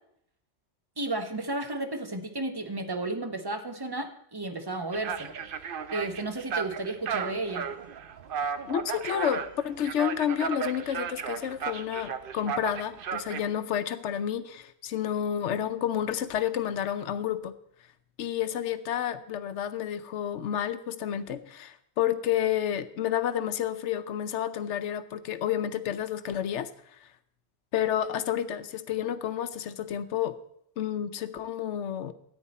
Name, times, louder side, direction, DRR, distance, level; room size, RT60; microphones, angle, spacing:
voice 1, 1.0-5.3 5.9-7.7, right 2 dB, 20° right, 6 dB, 0.9 m, -33 dB
sound 1, 4.9-13.5, right 7 dB, 55° right, 0.8 m, -34 dB
voice 2, 8.7-17.5 18.2-26.7 27.7-30.4 30.8-32.1, left 10 dB, 80° left, 13 dB, 1.0 m, -30 dB
13.5 x 9.1 x 4.2 m, 0.73 s
omnidirectional pair, 1.2 m